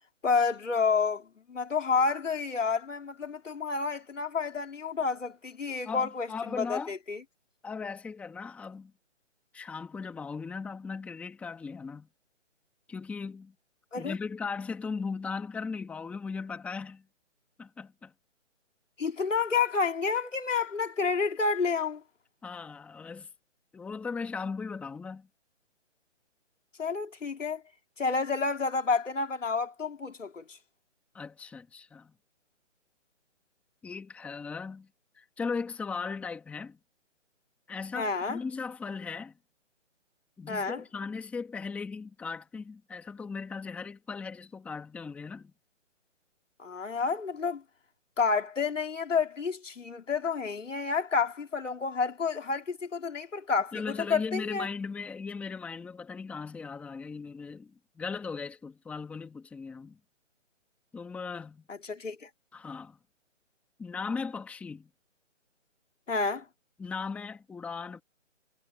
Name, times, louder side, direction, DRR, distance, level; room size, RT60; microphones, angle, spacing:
voice 1, 0.2-6.3 6.6-7.2 13.9-14.1 19.0-22.0 26.8-27.6 28.0-30.4 38.0-38.4 40.5-40.8 46.6-47.6 48.2-53.8 54.1-54.7 61.7-62.3 66.1-66.4, left 5 dB, 75° left, 4.0 m, -29 dB
voice 2, 5.9-6.9 7.6-8.9 9.5-12.1 12.9-13.5 14.0-17.0 17.6-18.1 22.4-23.3 23.7-25.3 31.1-32.1 33.8-34.9 35.2-36.8 37.7-39.4 40.4-45.5 53.7-60.0 60.9-61.6 62.5-63.0 63.8-64.9 66.8-68.0, left 5 dB, 5° left, 1.9 m, -38 dB
hypercardioid pair, 160°, 37 cm